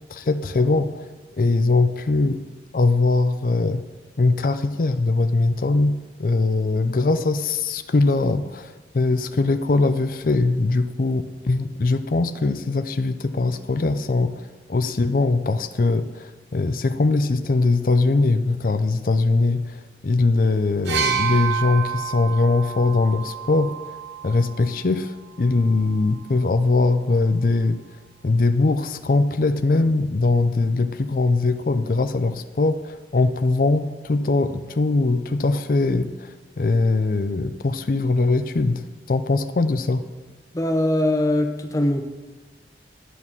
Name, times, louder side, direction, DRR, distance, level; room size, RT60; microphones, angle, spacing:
voice 1, 0.1-1.1 1.4-2.4 2.7-3.8 4.2-14.4 14.7-23.8 24.2-27.8 28.2-40.0, left 3 dB, 50° left, 10 dB, 0.5 m, -21 dB
sound 1, 20.9-24.7 25.7-25.9, right 7 dB, 75° right, 0.8 m, -28 dB
voice 2, 40.5-42.0, left 1 dB, 20° left, 4 dB, 0.8 m, -21 dB
11.0 x 4.2 x 7.2 m, 1.2 s
head